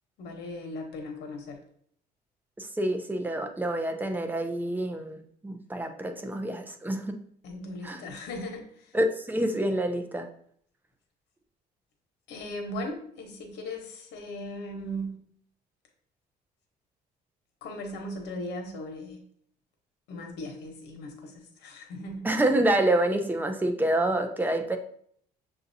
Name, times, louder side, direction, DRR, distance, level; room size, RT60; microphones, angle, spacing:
voice 1, 0.2-1.6 7.4-8.6 12.3-15.1 17.6-19.2 20.1-22.3, left 1 dB, 90° left, 3 dB, 1.0 m, -38 dB
voice 2, 2.6-7.2 7.8-8.0 8.9-10.3 22.2-24.8, right 1 dB, 10° right, 5 dB, 0.6 m, -27 dB
6.8 x 2.7 x 2.7 m, 0.62 s
cardioid pair, 110°, 17 cm